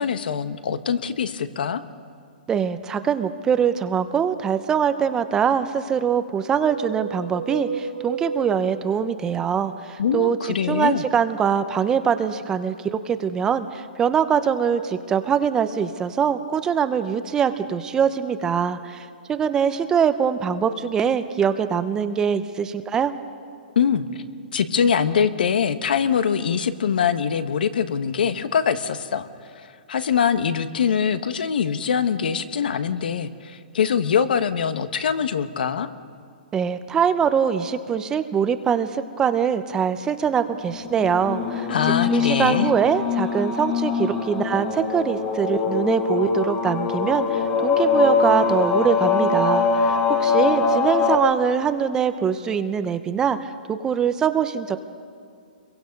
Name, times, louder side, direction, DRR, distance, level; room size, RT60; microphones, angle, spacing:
voice 1, 0.0-1.8 10.0-11.0 23.7-24.0 24.5-35.9 41.7-42.7, left 7 dB, 70° left, 11 dB, 1.3 m, -23 dB
voice 2, 2.5-10.4 10.7-23.1 36.5-41.7 42.1-54.8, right 7 dB, 15° right, 11 dB, 0.7 m, -23 dB
sound 1, 3.4-5.0 5.9-9.8, right 5 dB, 65° right, 3.2 m, -35 dB
sound 2, 40.8-51.2, left 5 dB, 25° left, 2.0 m, -22 dB
27.5 x 23.0 x 5.3 m, 2.3 s
hypercardioid pair, 155°, 5 cm